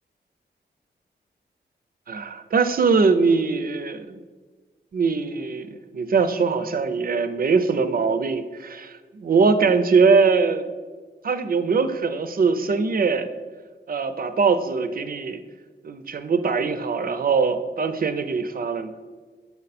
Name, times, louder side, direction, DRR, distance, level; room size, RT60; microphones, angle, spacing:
voice 1, 2.1-4.2 4.9-10.6 11.2-13.3 13.9-15.4 15.8-18.9, right 4 dB, 50° right, 10 dB, 0.4 m, -22 dB
5.4 x 4.6 x 4.1 m, 1.4 s
wide cardioid pair, 100°, 19 cm